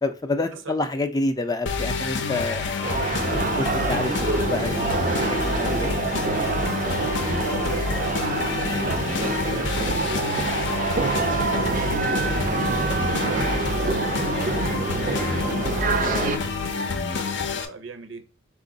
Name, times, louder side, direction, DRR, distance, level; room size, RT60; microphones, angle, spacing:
voice 1, 0.0-6.0 16.0-16.3, left 2 dB, 20° left, 0.4 m, -29 dB
sound 1, 1.7-17.7, left 4 dB, 65° left, 0.6 m, -28 dB
sound 2, 2.8-16.4, right 4 dB, 40° right, 0.4 m, -26 dB
voice 2, 6.8-12.3 12.8-15.5 15.8-18.2, right 3 dB, 80° right, 0.7 m, -40 dB
4.4 x 2.4 x 3.8 m
head